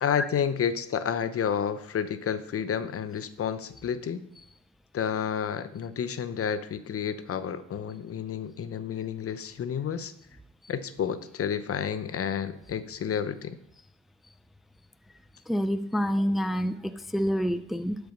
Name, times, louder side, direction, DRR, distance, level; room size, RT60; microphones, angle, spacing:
voice 1, 0.0-4.3 4.9-10.1 10.7-13.6, left 8 dB, 50° left, 13 dB, 0.8 m, -30 dB
voice 2, 15.5-18.0, equal, ahead, 10 dB, 0.5 m, -27 dB
12.0 x 4.8 x 5.2 m, 0.73 s
cardioid pair, 90°, 30 cm